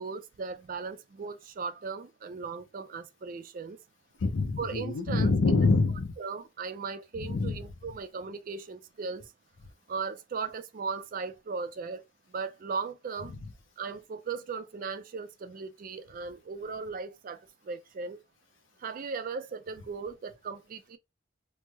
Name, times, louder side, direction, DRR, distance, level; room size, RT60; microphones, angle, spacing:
voice 1, 0.0-3.8 4.6-5.3 6.2-9.3 9.9-12.0 12.3-13.3 13.8-18.2 18.8-21.0, right 5 dB, 50° right, 0.4 m, -37 dB
voice 2, 4.2-6.1 7.2-7.6 13.3-13.5, left 3 dB, 90° left, 0.5 m, -26 dB
3.2 x 2.0 x 3.2 m
head